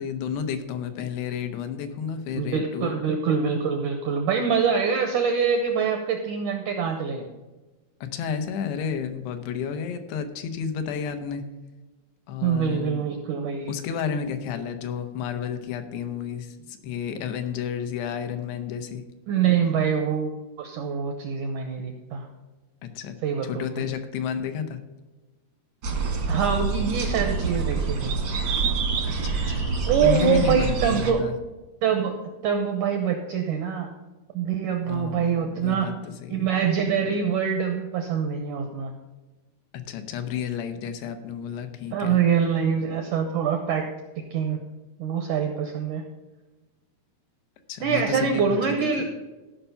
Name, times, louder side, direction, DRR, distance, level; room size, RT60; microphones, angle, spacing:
voice 1, 0.0-3.1 8.0-11.4 12.3-13.0 13.7-19.0 22.8-23.2 23.4-24.8 29.1-29.7 30.0-31.4 34.8-36.5 39.7-42.2 47.7-49.0, left 7 dB, 85° left, 7 dB, 3.1 m, -31 dB
voice 2, 2.3-7.3 12.4-13.7 19.3-22.3 23.2-23.7 26.3-28.1 29.9-31.3 31.8-32.2 32.4-33.9 34.3-35.9 36.3-38.9 41.9-43.9 44.3-44.6 45.0-46.0 47.8-49.0, right 7 dB, 80° right, 5 dB, 1.8 m, -24 dB
sound 1, 25.8-31.1, right 4 dB, 65° right, 1.1 m, -26 dB
14.0 x 5.8 x 5.5 m, 1.2 s
omnidirectional pair, 4.6 m